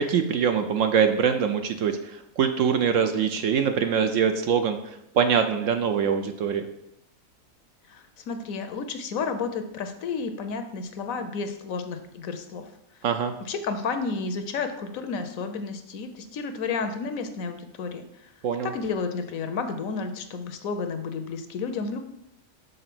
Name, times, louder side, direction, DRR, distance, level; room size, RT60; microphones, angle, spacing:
voice 1, 0.0-6.7 13.0-13.3 18.4-18.7, right 7 dB, 65° right, 7 dB, 0.8 m, -24 dB
voice 2, 7.9-12.7 13.4-18.3 18.6-22.0, left 4 dB, 70° left, 8 dB, 1.0 m, -31 dB
6.7 x 3.8 x 5.9 m, 0.81 s
omnidirectional pair, 1.6 m